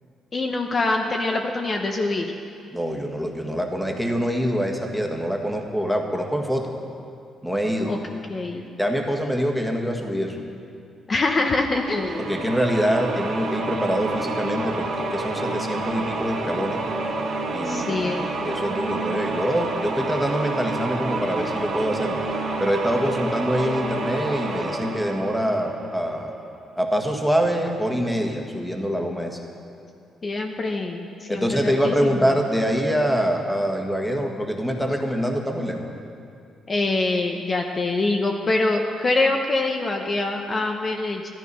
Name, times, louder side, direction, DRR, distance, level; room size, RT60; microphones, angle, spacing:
voice 1, 0.3-2.3 7.8-8.0 8.3-8.7 11.1-12.5 17.6-18.3 30.2-32.2 36.7-41.3, left 2 dB, 35° left, 3 dB, 1.0 m, -24 dB
voice 2, 2.7-6.7 7.4-7.9 8.8-10.4 12.2-16.8 17.5-18.1 18.4-22.2 22.6-26.3 26.8-29.4 31.3-35.9, equal, ahead, 2 dB, 1.6 m, -25 dB
sound 1, 11.7-26.3, right 3 dB, 60° right, 2.2 m, -29 dB
12.5 x 12.5 x 5.6 m, 2.5 s
cardioid pair, 90°, 0 cm